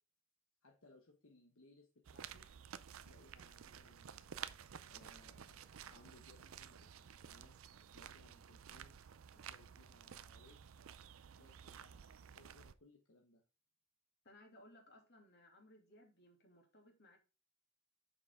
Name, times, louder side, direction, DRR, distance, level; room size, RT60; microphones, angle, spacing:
voice 1, 0.6-2.5 2.9-4.5 4.9-9.0 9.3-10.8 11.3-13.4, left 2 dB, 80° left, 2 dB, 1.2 m, -66 dB
sound 1, 2.1-12.7, right 8 dB, 80° right, 0.5 m, -53 dB
voice 2, 14.2-17.2, left 1 dB, 55° left, 2 dB, 2.5 m, -63 dB
6.9 x 5.9 x 3.6 m, 0.32 s
head